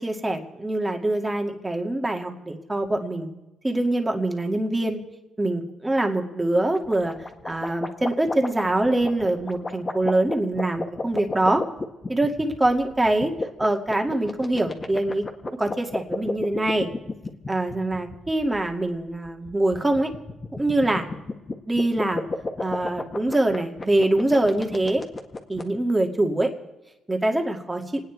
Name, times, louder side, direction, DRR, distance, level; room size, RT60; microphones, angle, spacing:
voice 1, 0.0-3.3 3.6-5.0 5.4-7.1 7.4-11.6 12.1-13.3 13.6-15.2 15.6-16.9 17.5-20.1 20.5-21.1 21.7-22.3 22.6-25.0 25.5-26.5 27.1-28.0, right 1 dB, 15° right, 3 dB, 2.2 m, -24 dB
sound 1, 6.7-25.6, left 3 dB, 25° left, 1.8 m, -32 dB
28.0 x 9.6 x 4.7 m, 1.0 s
cardioid pair, 90°, 0 cm